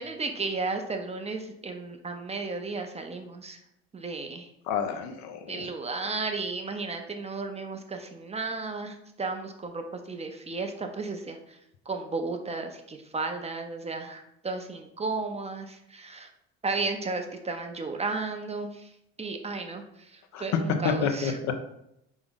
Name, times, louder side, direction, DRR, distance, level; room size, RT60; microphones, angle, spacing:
voice 1, 0.0-3.6 3.9-4.5 5.5-11.6 11.9-16.3 16.6-18.9 19.2-21.4, right 3 dB, 20° right, 5 dB, 0.6 m, -34 dB
voice 2, 4.7-5.7 20.3-20.4 20.8-21.5, left 6 dB, 65° left, 6 dB, 0.7 m, -29 dB
3.8 x 3.6 x 3.6 m, 0.81 s
supercardioid pair, 75°, 30 cm